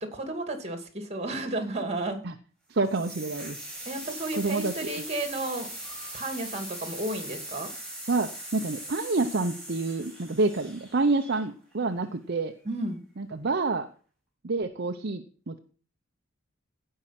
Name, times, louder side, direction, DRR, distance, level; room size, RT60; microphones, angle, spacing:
voice 1, 0.0-2.2 3.9-5.7 6.1-7.7 12.6-13.0, right 2 dB, 30° right, 7 dB, 2.4 m, -32 dB
voice 2, 2.7-3.6 4.4-4.9 8.1-12.5 13.2-13.9 14.4-15.6, right 3 dB, 50° right, 6 dB, 0.7 m, -28 dB
sound 1, 2.8-11.7, right 1 dB, 5° left, 5.3 m, -40 dB
16.5 x 5.6 x 5.8 m, 0.40 s
head